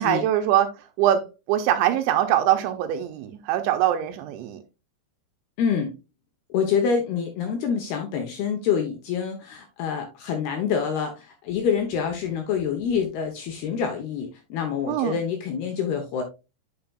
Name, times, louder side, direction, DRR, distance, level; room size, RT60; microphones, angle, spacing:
voice 1, 0.0-4.6 14.9-15.2, right 11 dB, 85° right, 2.9 m, -23 dB
voice 2, 5.6-5.9 6.5-16.2, left 7 dB, 75° left, 2.4 m, -26 dB
8.8 x 6.6 x 2.3 m
omnidirectional pair, 5.6 m